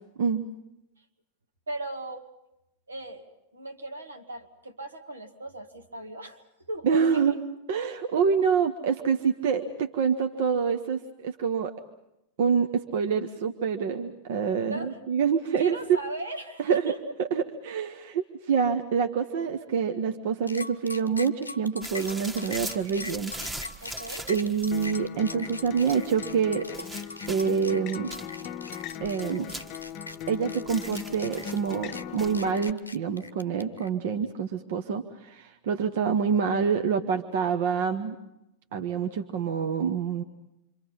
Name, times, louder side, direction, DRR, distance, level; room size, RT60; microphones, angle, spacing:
voice 1, 1.7-2.3 2.9-7.4 14.6-15.0 15.3-17.0 23.8-24.3, right 2 dB, 75° right, 6 dB, 1.7 m, -38 dB
voice 2, 6.8-7.3 7.7-11.7 12.4-15.7 16.7-16.9 17.2-23.3 24.3-26.7 27.3-28.1 29.0-29.5 30.3-38.1 38.7-40.2, right 6 dB, 55° right, 6 dB, 1.1 m, -26 dB
sound 1, 20.5-33.9, left 2 dB, 85° left, 0.9 m, -41 dB
sound 2, 21.8-25.0 25.8-26.2 26.7-27.7 28.1-30.3 30.7-31.8 32.2-32.5, right 1 dB, 10° right, 1.5 m, -41 dB
Acoustic guitar, 24.7-32.7, left 9 dB, 40° left, 0.8 m, -39 dB
28.0 x 25.5 x 5.6 m, 0.86 s
figure-of-eight pair, 90°, 0 cm